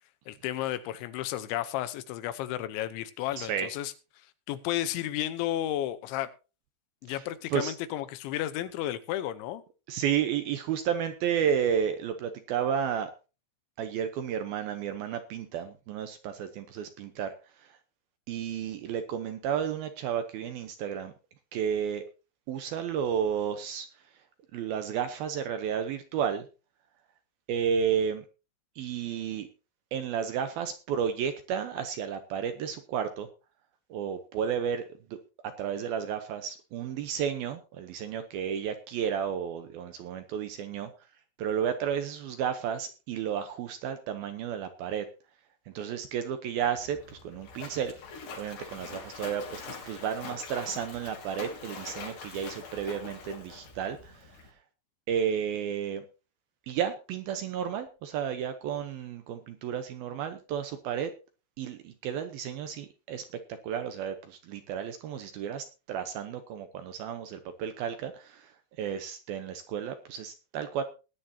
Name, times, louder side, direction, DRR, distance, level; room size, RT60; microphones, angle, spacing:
voice 1, 0.3-3.9 4.5-6.3 7.0-9.6, left 13 dB, 85° left, 3.3 m, -32 dB
voice 2, 3.4-3.7 7.1-7.2 7.5-7.7 9.9-13.1 13.8-17.3 18.3-21.1 21.5-22.0 22.5-23.9 24.5-26.5 27.5-28.3 28.8-29.5 29.9-33.3 33.9-34.8 35.1-35.2 35.6-40.9 41.4-45.1 45.7-47.9 48.4-54.3 55.1-56.0 56.7-61.1 61.6-63.2 63.6-68.5 68.8-70.8, right 8 dB, 75° right, 2.3 m, -32 dB
Splash splatter, 46.6-54.5, left 5 dB, 65° left, 4.9 m, -44 dB
20.0 x 10.0 x 2.8 m
omnidirectional pair, 5.2 m